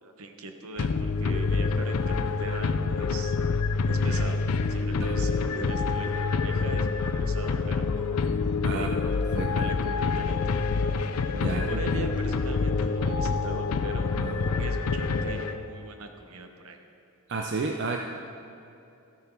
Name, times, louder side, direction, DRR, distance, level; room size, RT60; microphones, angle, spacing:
voice 1, 0.0-3.3 3.9-4.4 4.7-7.9 8.7-9.0 9.5-10.9 11.4-14.2 14.6-16.8, right 3 dB, 70° right, 5 dB, 0.9 m, -40 dB
sound 1, 0.8-15.8, left 4 dB, 80° left, 0.5 m, -27 dB
voice 2, 9.3-9.7 11.3-11.8 14.1-14.4 17.3-18.0, right 3 dB, 55° right, 2 dB, 0.5 m, -32 dB
13.0 x 6.8 x 4.5 m, 2.6 s
head